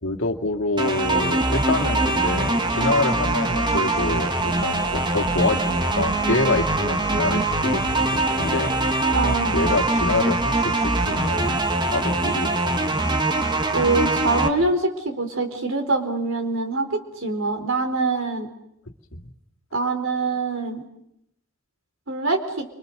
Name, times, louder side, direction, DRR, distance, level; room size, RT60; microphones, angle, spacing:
voice 1, 0.0-9.1 9.5-13.2 19.1-19.3, left 2 dB, 70° left, 2 dB, 2.1 m, -26 dB
sound 1, 0.8-14.5, right 2 dB, 20° right, 1.6 m, -23 dB
voice 2, 9.1-9.5 13.7-18.5 19.7-20.8 22.1-22.7, right 3 dB, 75° right, 6 dB, 4.2 m, -24 dB
30.0 x 25.5 x 6.7 m, 0.77 s
head